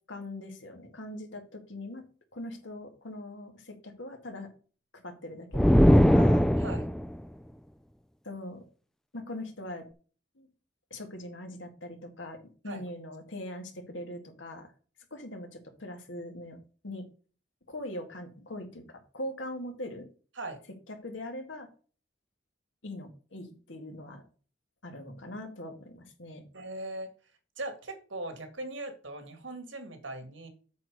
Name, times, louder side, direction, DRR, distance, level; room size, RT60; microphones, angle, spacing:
voice 1, 0.1-2.0 2.3-4.5 4.9-6.5 8.2-8.6 9.1-9.9 10.4-10.5 10.9-12.4 12.6-14.7 15.1-16.6 16.8-17.1 17.7-20.1 20.9-21.7 22.8-24.2 24.8-26.4, left 1 dB, 80° left, 4 dB, 2.0 m, -41 dB
sound 1, 5.5-7.1, equal, 5° left, 0.4 m, -20 dB
voice 2, 6.6-6.9 12.7-12.8 20.4-20.6 26.5-27.1 27.6-30.5, right 2 dB, 80° right, 7 dB, 1.9 m, -39 dB
8.4 x 4.3 x 6.6 m, 0.38 s
head